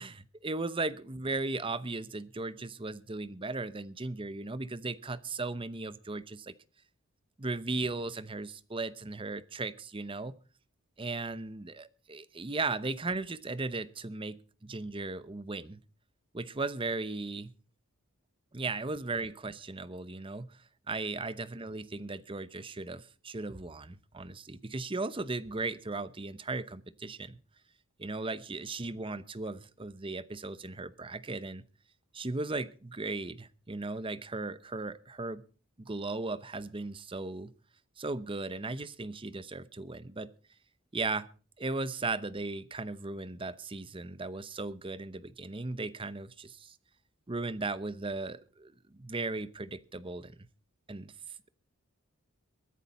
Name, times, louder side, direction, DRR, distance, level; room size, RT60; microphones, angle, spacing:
voice 1, 0.0-6.5 7.4-10.3 11.0-15.8 16.3-17.5 18.5-20.6 20.9-27.4 28.0-31.6 32.1-35.4 35.8-37.5 38.0-40.3 40.9-41.3 41.6-46.8 47.3-50.5 50.9-51.1, right 3 dB, 25° right, 15 dB, 0.8 m, -37 dB
22.5 x 10.0 x 4.3 m, 0.38 s
head